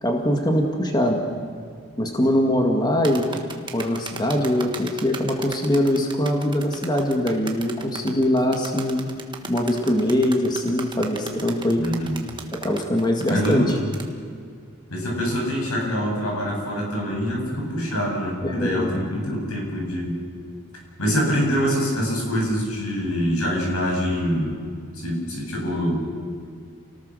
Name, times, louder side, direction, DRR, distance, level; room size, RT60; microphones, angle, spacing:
voice 1, 0.0-1.2 2.0-3.3 3.7-9.1 9.5-11.8 12.6-13.6 18.4-18.9, left 1 dB, 20° left, 2 dB, 2.0 m, -22 dB
sound 1, 3.0-14.1, right 4 dB, 20° right, 1.4 m, -36 dB
voice 2, 11.8-12.1 13.3-13.7 14.9-20.1 21.0-24.6 24.9-26.0, equal, 80° left, -1 dB, 8.0 m, -25 dB
29.0 x 19.0 x 6.5 m, 2.1 s
head